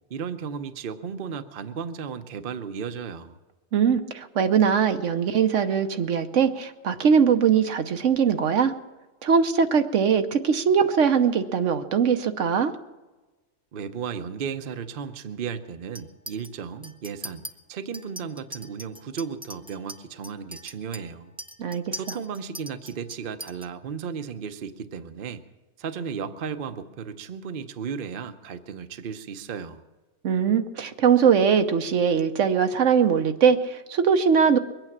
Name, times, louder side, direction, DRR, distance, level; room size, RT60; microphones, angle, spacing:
voice 1, 0.1-3.4 13.7-21.3 21.9-25.4 25.8-29.8, right 6 dB, 50° right, 9 dB, 0.9 m, -35 dB
voice 2, 3.7-8.7 9.2-12.7 21.6-22.0 30.2-34.6, right 7 dB, 75° right, 8 dB, 1.2 m, -21 dB
Chink clink, 15.9-16.5 16.8-17.5 17.9-23.7, right 1 dB, 5° right, 0.5 m, -41 dB
22.5 x 9.0 x 7.2 m, 1.2 s
omnidirectional pair, 1.3 m